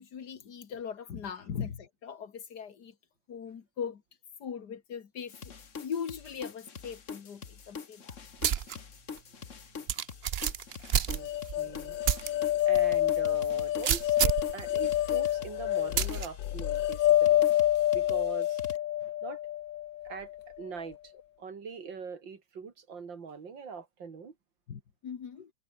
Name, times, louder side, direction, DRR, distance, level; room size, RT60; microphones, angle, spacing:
voice 1, 0.0-3.0 3.3-4.0 4.4-8.2 10.9-11.3 24.7-25.5, left 7 dB, 60° left, 2.2 m, -40 dB
sound 1, 5.3-18.8, left 6 dB, 45° left, 1.8 m, -45 dB
sound 2, 8.4-8.8 9.2-9.3 9.9-11.6 12.0-12.3 12.7-12.8 13.8-14.5 16.0-16.3, right 9 dB, 60° right, 0.6 m, -28 dB
sound 3, 11.2-20.4, left 13 dB, 90° left, 1.6 m, -28 dB
voice 2, 11.6-12.0 12.7-17.4 17.9-18.6 19.0-19.4 20.0-21.1 21.4-24.3, right 5 dB, 85° right, 3.2 m, -42 dB
omnidirectional pair, 2.0 m